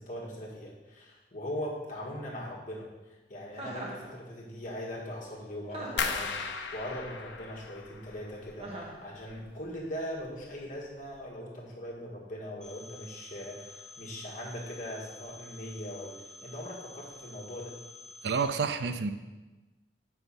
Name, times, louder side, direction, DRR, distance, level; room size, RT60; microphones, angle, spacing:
voice 1, 0.0-17.7, equal, 45° left, -3 dB, 1.8 m, -40 dB
Chuckle chortle, 3.5-4.0 5.7-6.3 8.6-9.0, right 1 dB, 35° right, 1.6 m, -40 dB
sound 1, 6.0-8.8 9.1-9.8 10.2-10.6 11.0-11.2, left 5 dB, 85° left, 0.7 m, -37 dB
Telephone, 12.6-18.4, left 2 dB, 5° left, 1.3 m, -49 dB
voice 2, 18.2-19.1, right 5 dB, 70° right, 10 dB, 0.5 m, -29 dB
6.9 x 5.6 x 5.6 m, 1.2 s
head